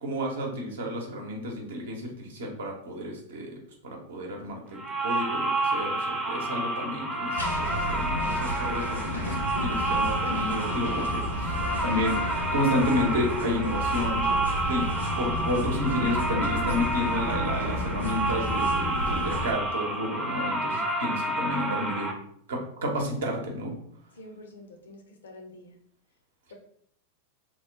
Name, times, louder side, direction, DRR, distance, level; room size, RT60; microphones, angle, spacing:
voice 1, 0.0-3.5 3.8-11.6 11.8-14.3 14.7-14.9 15.2-22.1 22.5-23.7, left 1 dB, 65° right, 1 dB, 0.8 m, -31 dB
sound 1, 4.8-22.1, right 2 dB, 10° right, 0.6 m, -29 dB
sound 2, 7.3-19.5, left 1 dB, 80° left, 1.0 m, -32 dB
sound 3, 14.5-19.8, right 3 dB, 80° right, 0.4 m, -45 dB
voice 2, 24.2-25.8, left 1 dB, 65° left, 3 dB, 0.6 m, -48 dB
3.0 x 2.1 x 3.6 m, 0.67 s
figure-of-eight pair, 90°, 0 cm